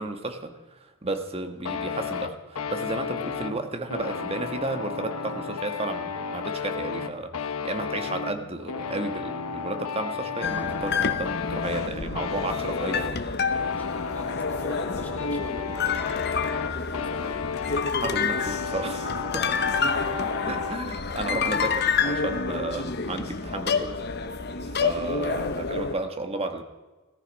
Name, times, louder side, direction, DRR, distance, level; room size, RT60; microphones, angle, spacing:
voice 1, 0.0-13.2 18.0-19.8 20.5-23.9 24.8-26.6, right 2 dB, 25° right, 7 dB, 1.3 m, -33 dB
sound 1, 1.6-20.8, left 6 dB, 90° left, 1.0 m, -33 dB
sound 2, 10.4-26.0, left 5 dB, 50° left, 0.9 m, -28 dB
voice 2, 13.6-17.4 19.2-20.3 22.3-22.4, left 1 dB, 5° left, 3 dB, 1.7 m, -45 dB
17.5 x 14.0 x 5.2 m, 1.2 s
head